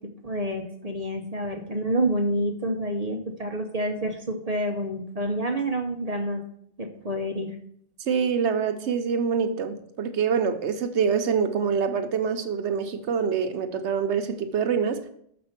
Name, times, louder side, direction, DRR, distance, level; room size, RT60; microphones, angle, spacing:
voice 1, 0.2-6.5 6.8-7.6, right 1 dB, 35° right, 2 dB, 0.8 m, -28 dB
voice 2, 8.1-15.0, right 6 dB, 75° right, 8 dB, 1.0 m, -25 dB
6.8 x 5.2 x 5.8 m, 0.68 s
omnidirectional pair, 1.2 m